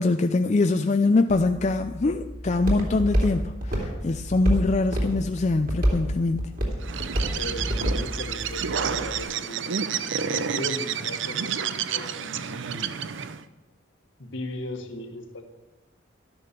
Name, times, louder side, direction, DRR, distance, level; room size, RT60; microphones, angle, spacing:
voice 1, 0.0-6.6, left 3 dB, 35° left, 0.4 m, -23 dB
Walk footsteps, 1.3-9.2, equal, 45° right, 3.0 m, -29 dB
Bird, 6.8-13.4, right 7 dB, 70° right, 0.6 m, -30 dB
voice 2, 7.3-13.0 14.2-15.4, left 1 dB, 70° left, 1.7 m, -37 dB
12.5 x 10.0 x 6.8 m
head